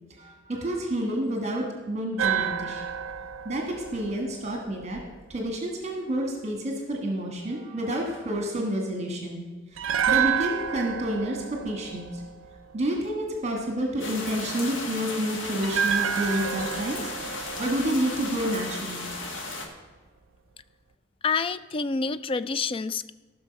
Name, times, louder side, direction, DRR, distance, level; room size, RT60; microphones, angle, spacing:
voice 1, 0.1-2.9 3.4-5.0 5.3-9.4 9.7-12.2 12.7-19.1, right 1 dB, 35° right, 1 dB, 1.5 m, -29 dB
sound 1, 2.2-5.4 9.8-13.0 15.6-18.8 19.1-19.2, right 8 dB, 90° right, 0.5 m, -30 dB
sound 2, 14.0-19.7, left 2 dB, 70° left, 1.6 m, -35 dB
voice 2, 21.2-23.1, left 4 dB, 25° left, 14 dB, 0.3 m, -28 dB
14.5 x 6.3 x 5.3 m, 1.3 s
head